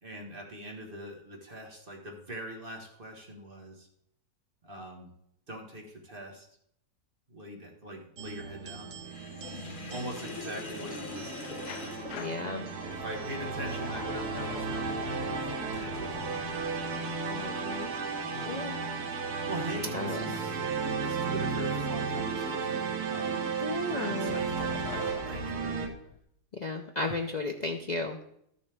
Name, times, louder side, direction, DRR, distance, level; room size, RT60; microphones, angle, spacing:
voice 1, 0.0-3.9 4.6-5.1 5.5-6.5 7.3-8.9 9.9-11.6 12.4-12.6 13.0-15.4 15.7-16.7 17.3-17.5 18.3-18.7 19.5-20.6 20.8-23.5 23.8-24.7 25.0-25.7, equal, 35° right, 1 dB, 1.5 m, -42 dB
sound 1, 8.2-25.9, right 5 dB, 80° right, 1.6 m, -34 dB
Sink (filling or washing), 9.1-13.0, left 3 dB, 40° left, 0.9 m, -42 dB
sound 2, 11.7-18.4 23.9-26.2, left 6 dB, 85° left, 1.2 m, -43 dB
voice 2, 12.1-12.7 17.3-17.9 18.4-18.8 19.9-20.4 23.6-24.4 26.5-28.2, left 3 dB, 70° left, 3 dB, 0.4 m, -34 dB
13.0 x 6.7 x 3.4 m, 0.73 s
omnidirectional pair, 1.6 m